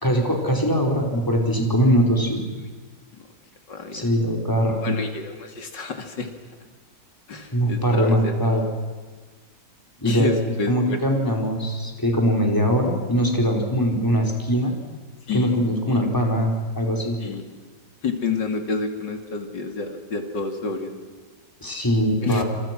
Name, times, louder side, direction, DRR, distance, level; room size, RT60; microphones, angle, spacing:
voice 1, 0.0-2.4 3.9-4.8 7.5-8.6 10.0-10.3 10.7-14.7 15.3-17.2 21.6-22.4, equal, 10° left, 1 dB, 4.7 m, -21 dB
voice 2, 3.7-4.1 4.8-6.3 7.3-8.3 10.0-11.1 15.3-15.6 15.9-16.0 17.2-17.4 18.0-20.9 22.2-22.4, left 4 dB, 85° left, 5 dB, 3.2 m, -28 dB
29.0 x 27.0 x 6.2 m, 1.4 s
omnidirectional pair, 1.9 m